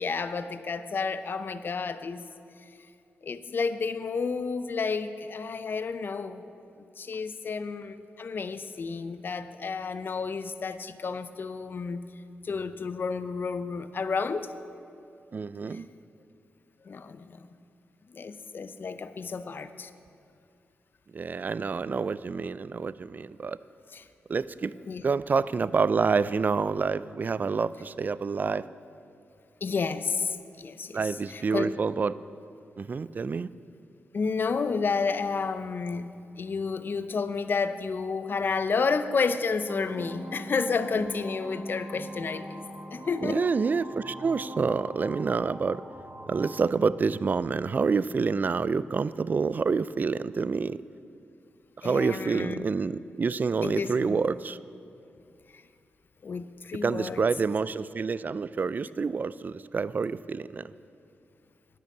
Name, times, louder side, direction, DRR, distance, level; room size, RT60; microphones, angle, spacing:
voice 1, 0.0-2.3 3.2-6.4 7.0-12.0 12.4-14.5 15.7-15.8 16.9-17.5 18.1-19.9 23.9-24.0 24.9-25.0 29.6-31.7 34.1-42.7 42.9-43.5 51.8-52.7 53.6-54.2 55.5-55.6 56.2-57.2, left 5 dB, 50° left, 12 dB, 0.6 m, -31 dB
voice 2, 15.3-15.9 21.1-23.6 24.3-24.7 25.0-28.7 30.9-32.2 32.8-33.5 43.2-45.8 46.3-50.8 51.8-54.6 56.8-60.6, right 5 dB, 45° right, 17 dB, 0.3 m, -28 dB
sound 1, 39.7-46.7, equal, 20° right, 1.1 m, -41 dB
10.5 x 6.7 x 8.4 m, 2.5 s
cardioid pair, 55°, 4 cm